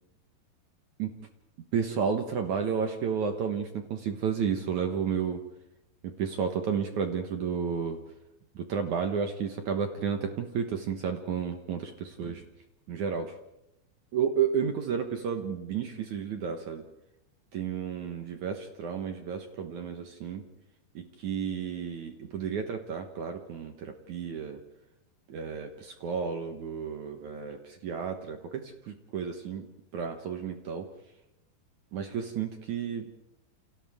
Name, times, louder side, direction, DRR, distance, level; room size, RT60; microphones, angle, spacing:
voice 1, 1.7-5.4 6.0-8.0 8.6-12.4 12.9-13.3 14.1-16.8 17.5-20.4 21.0-24.6 25.3-29.7 29.9-30.9 31.9-33.1, right 7 dB, 70° right, 5 dB, 1.8 m, -32 dB
29.5 x 29.5 x 3.6 m, 0.91 s
omnidirectional pair, 5.2 m